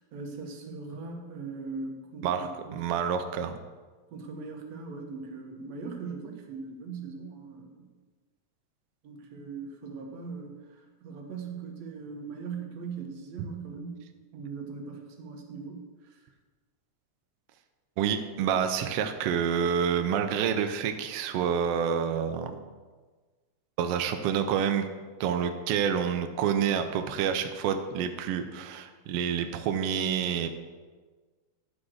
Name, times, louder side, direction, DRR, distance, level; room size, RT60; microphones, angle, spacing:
voice 1, 0.0-2.8 4.1-7.9 9.0-14.0 14.3-16.2, right 4 dB, 65° right, 2 dB, 2.3 m, -40 dB
voice 2, 2.2-3.6 18.0-22.6 23.8-24.8 25.2-30.5, right 8 dB, 85° right, 7 dB, 1.3 m, -28 dB
10.5 x 5.0 x 6.3 m, 1.4 s
omnidirectional pair, 3.5 m